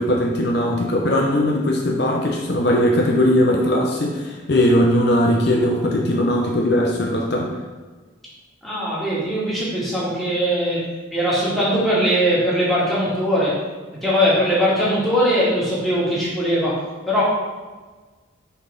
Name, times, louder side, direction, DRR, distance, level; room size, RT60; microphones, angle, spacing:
voice 1, 0.0-7.5, left 1 dB, 55° left, 0 dB, 0.7 m, -19 dB
voice 2, 8.6-10.8 11.1-13.5 14.0-16.8 17.1-17.2, equal, ahead, -8 dB, 1.9 m, -20 dB
5.8 x 4.1 x 5.3 m, 1.3 s
head